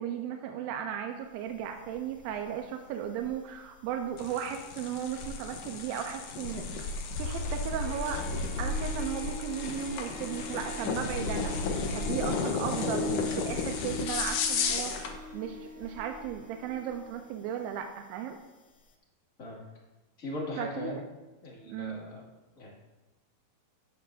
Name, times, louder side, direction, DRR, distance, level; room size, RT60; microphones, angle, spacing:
voice 1, 0.0-8.2 8.6-11.6 11.9-18.4 20.6-21.0 21.7-22.0, right 8 dB, 85° right, 4 dB, 2.5 m, -36 dB
sound 1, 1.8-2.6 2.9-16.4 16.7-16.9, left 1 dB, 65° left, 2.1 m, -38 dB
sound 2, 4.2-15.2, left 5 dB, 90° left, 1.4 m, -35 dB
Harp, 7.7-17.3, left 2 dB, 65° right, 4.0 m, -42 dB
voice 2, 20.2-21.0 21.4-22.2 22.6-22.7, left 1 dB, 30° left, -3 dB, 1.8 m, -38 dB
13.5 x 10.0 x 2.6 m, 1.1 s
omnidirectional pair, 4.3 m